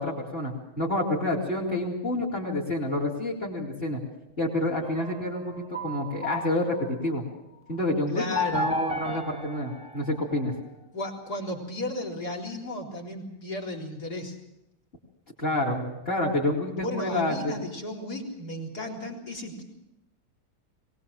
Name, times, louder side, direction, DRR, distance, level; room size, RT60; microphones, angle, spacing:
voice 1, 0.0-4.0 4.4-5.5 5.8-7.2 7.7-8.2 8.5-10.5 15.4-17.5, left 1 dB, 25° left, 0 dB, 4.2 m, -28 dB
sound 1, 4.8-7.1 8.3-10.6, left 1 dB, 5° right, 1.2 m, -33 dB
voice 2, 8.1-8.7 10.9-14.4 16.7-19.6, left 1 dB, 45° left, 1 dB, 4.6 m, -34 dB
22.5 x 19.5 x 7.5 m, 0.87 s
omnidirectional pair, 2.3 m